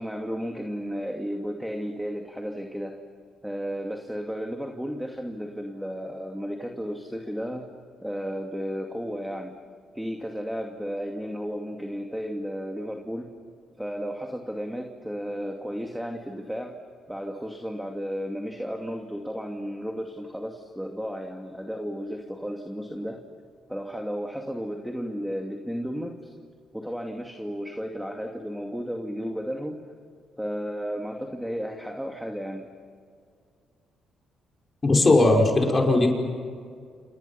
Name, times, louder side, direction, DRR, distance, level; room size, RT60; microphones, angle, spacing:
voice 1, 0.0-3.0 3.4-7.7 8.0-9.5 9.9-13.3 13.8-16.8 17.1-23.2 23.7-26.3 26.7-29.8 30.4-32.7, equal, ahead, 3 dB, 2.4 m, -33 dB
voice 2, 34.8-36.1, left 2 dB, 30° left, 1 dB, 5.5 m, -18 dB
29.5 x 28.0 x 5.8 m, 2.1 s
cardioid pair, 90°, 0 cm